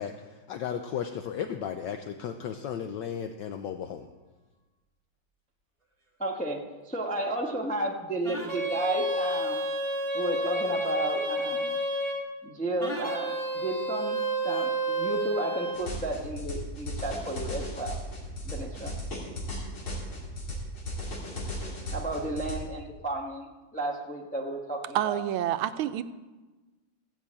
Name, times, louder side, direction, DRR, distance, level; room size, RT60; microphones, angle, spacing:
voice 1, 0.0-4.1, left 8 dB, 70° left, 6 dB, 1.2 m, -35 dB
voice 2, 6.2-9.7 10.1-11.8 12.4-14.2 14.4-18.0 18.4-19.0 21.9-23.5 23.7-25.2, right 2 dB, 5° left, 0 dB, 0.8 m, -33 dB
sound 1, 8.2-12.3 12.8-15.8, right 1 dB, 15° right, 1.3 m, -30 dB
sound 2, 15.7-22.6, equal, 90° left, 3.7 m, -36 dB
voice 3, 24.9-26.0, right 12 dB, 85° right, 12 dB, 1.5 m, -28 dB
15.0 x 6.2 x 8.6 m, 1.2 s
omnidirectional pair, 2.2 m